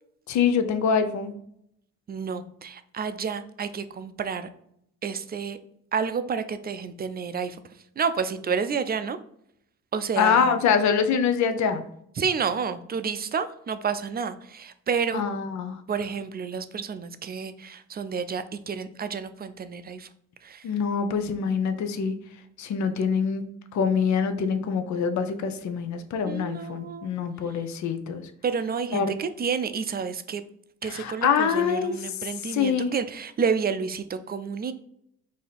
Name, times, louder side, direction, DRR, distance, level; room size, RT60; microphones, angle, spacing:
voice 1, 0.3-1.3 10.2-11.9 15.1-15.8 20.6-22.1 22.6-23.4 23.7-28.2 28.9-29.1 30.8-32.1 32.5-32.9, left 6 dB, 70° left, 9 dB, 0.7 m, -25 dB
voice 2, 2.1-4.5 5.0-5.6 5.9-7.6 8.0-9.2 9.9-10.6 12.2-15.2 15.9-20.1 20.4-20.6 26.2-27.1 28.4-30.4 30.8-34.7, right 6 dB, 30° right, 11 dB, 0.5 m, -30 dB
4.8 x 2.8 x 4.0 m, 0.72 s
cardioid pair, 90°, 30 cm